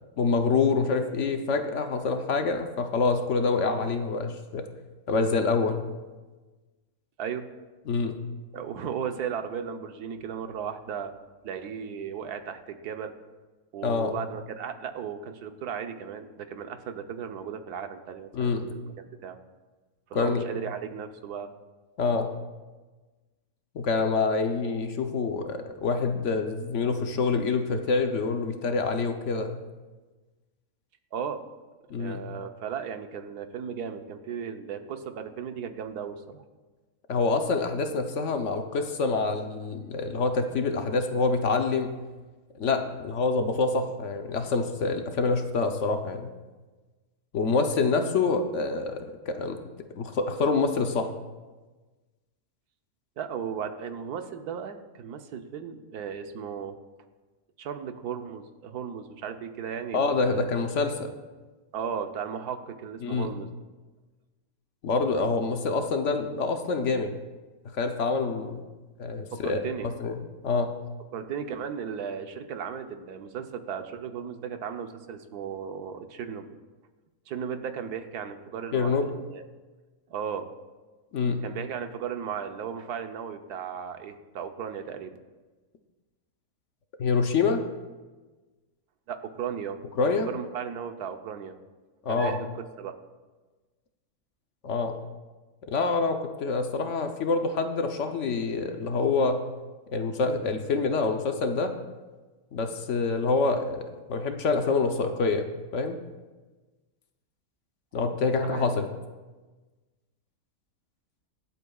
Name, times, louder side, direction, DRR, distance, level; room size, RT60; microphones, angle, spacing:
voice 1, 0.2-4.7 5.1-5.8 7.9-8.2 13.8-14.2 18.3-18.8 20.1-20.4 22.0-22.3 23.7-29.6 31.9-32.2 37.1-41.9 42.5-46.3 47.3-49.6 50.0-51.1 59.9-61.1 63.0-63.3 64.8-67.1 67.6-68.6 69.0-70.2 70.4-70.7 78.7-79.0 81.1-81.4 87.0-87.6 90.0-90.3 92.0-92.3 94.6-94.9 95.7-99.4 99.9-101.7 102.5-103.8 104.1-106.0 107.9-108.9, left 4 dB, 60° left, 6 dB, 1.0 m, -26 dB
voice 2, 8.5-11.1 11.4-13.2 13.7-19.4 20.1-21.5 31.1-31.5 32.0-36.4 53.2-56.8 57.6-60.5 61.7-63.5 69.3-69.9 71.1-76.5 77.3-79.5 80.1-80.5 81.4-85.2 89.1-89.8 90.0-91.6 92.1-92.5 92.8-92.9 108.5-108.7, right 7 dB, 85° right, 7 dB, 1.4 m, -36 dB
23.0 x 8.2 x 2.3 m, 1.3 s
omnidirectional pair, 1.6 m